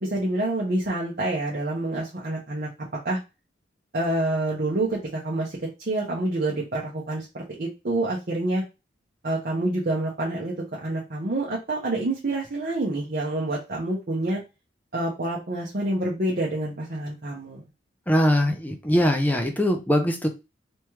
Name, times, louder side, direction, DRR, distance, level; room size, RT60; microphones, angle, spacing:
voice 1, 0.0-2.7 3.0-3.2 3.9-5.6 5.9-8.6 9.2-10.5 10.8-14.4 14.9-17.6, right 2 dB, 50° right, -4 dB, 0.9 m, -27 dB
voice 2, 18.1-20.3, equal, 10° left, 4 dB, 0.6 m, -21 dB
3.5 x 3.1 x 3.0 m, 0.27 s
head